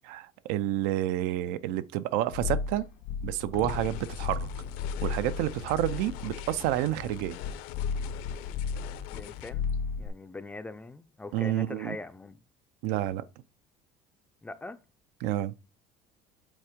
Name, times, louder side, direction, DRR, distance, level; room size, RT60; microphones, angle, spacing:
voice 1, 0.0-2.9 3.2-4.5 5.0-7.4 11.3-12.0 12.8-13.2 15.2-15.5, right 14 dB, 75° right, 0.5 m, -29 dB
sound 1, 2.3-9.2 9.5-10.1, left 6 dB, 90° left, 1.8 m, -34 dB
sound 2, 3.7-9.5, left 13 dB, 70° left, 0.7 m, -43 dB
voice 2, 9.1-9.7 10.0-12.4 14.4-14.8, left 2 dB, 10° left, 0.4 m, -42 dB
7.3 x 3.5 x 5.0 m
cardioid pair, 155°, 15 cm